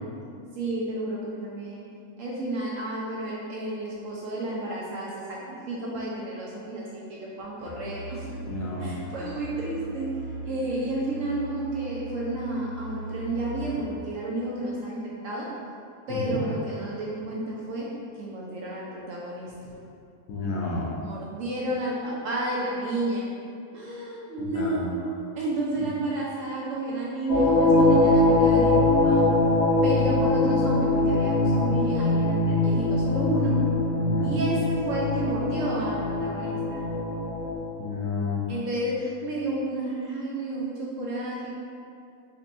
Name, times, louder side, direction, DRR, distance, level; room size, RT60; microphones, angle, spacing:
voice 1, 0.6-1.8 2.2-8.3 8.8-10.1 10.4-15.0 15.2-15.5 16.1-17.9 18.2-19.8 20.9-23.3 23.7-24.9 25.4-29.3 29.8-33.6 34.2-36.9 38.5-41.5, right 2 dB, 70° right, -5 dB, 0.8 m, -31 dB
Musical instrument, 7.6-14.0, right 1 dB, 80° left, 1.3 m, -39 dB
voice 2, 8.5-8.9 16.1-16.4 20.3-21.0 24.4-24.9 25.8-25.9 34.0-34.4 37.8-38.4, left 3 dB, 65° left, -4 dB, 0.9 m, -31 dB
sound 1, 27.3-37.6, left 2 dB, 45° left, 0.5 m, -22 dB
4.2 x 3.1 x 2.5 m, 2.5 s
omnidirectional pair, 1.8 m